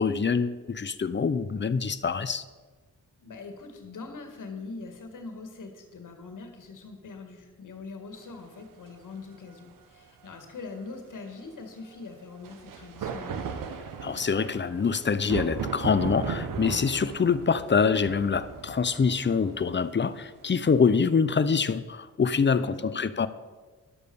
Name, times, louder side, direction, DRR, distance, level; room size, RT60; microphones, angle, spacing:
voice 1, 0.0-2.4 14.0-23.3, left 5 dB, 35° left, 14 dB, 0.7 m, -25 dB
voice 2, 3.2-13.4 22.5-23.0, left 4 dB, 70° left, 5 dB, 1.8 m, -42 dB
sound 1, 8.5-8.6 12.4-20.8, right 6 dB, 90° right, 0.9 m, -37 dB
11.5 x 6.6 x 6.9 m, 1.4 s
cardioid pair, 50°, 32 cm